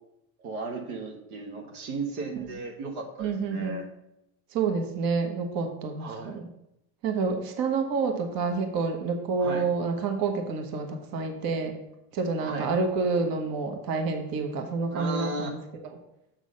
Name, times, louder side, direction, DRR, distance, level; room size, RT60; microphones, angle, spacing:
voice 1, 0.4-3.9 6.0-6.3 9.4-9.6 12.4-12.7 14.9-15.5, right 3 dB, 85° right, 3 dB, 1.4 m, -35 dB
voice 2, 3.2-3.8 4.5-6.5 7.0-11.7 12.1-15.6, right 4 dB, 55° right, 4 dB, 1.3 m, -28 dB
7.0 x 3.8 x 6.4 m, 0.84 s
supercardioid pair, 95°, 43 cm